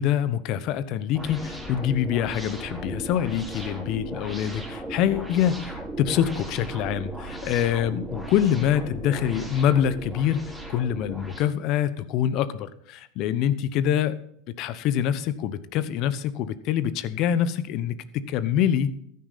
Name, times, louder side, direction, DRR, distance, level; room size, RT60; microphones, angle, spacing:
voice 1, 0.0-14.2 14.5-18.9, left 10 dB, 55° left, 15 dB, 1.0 m, -25 dB
sound 1, 1.1-11.4, right 1 dB, 10° right, 4.4 m, -37 dB
14.5 x 9.5 x 4.2 m, 0.71 s
hypercardioid pair, 95°, 0 cm